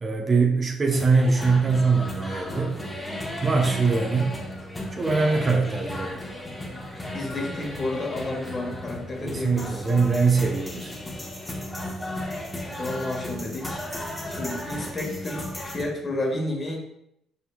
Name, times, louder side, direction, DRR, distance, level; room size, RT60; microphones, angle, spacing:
voice 1, 0.0-2.8 3.4-4.3 4.9-6.3 9.2-10.9, right 4 dB, 35° right, 1 dB, 0.9 m, -22 dB
sound 1, 0.9-15.8, left 1 dB, 15° left, 1.3 m, -35 dB
voice 2, 7.1-9.8 12.7-13.9 14.3-16.8, left 2 dB, 40° left, 0 dB, 1.4 m, -31 dB
5.2 x 4.3 x 2.3 m, 0.77 s
hypercardioid pair, 55°, 0 cm